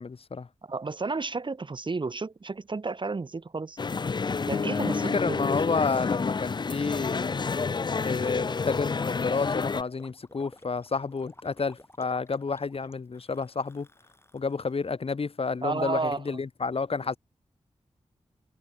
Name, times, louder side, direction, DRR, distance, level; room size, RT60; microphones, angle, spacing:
voice 1, 0.0-0.5 5.1-7.4 7.9-13.9 14.3-17.2, left 4 dB, 55° left, 1.8 m, -30 dB
voice 2, 0.6-3.8 4.5-5.5 15.6-16.2, right 3 dB, 45° right, 1.3 m, -32 dB
sound 1, 3.8-9.8, left 4 dB, 40° left, 0.5 m, -29 dB
Gurgling, 8.1-14.9, left 1 dB, 20° left, 7.9 m, -53 dB
cardioid pair, 50°, 12 cm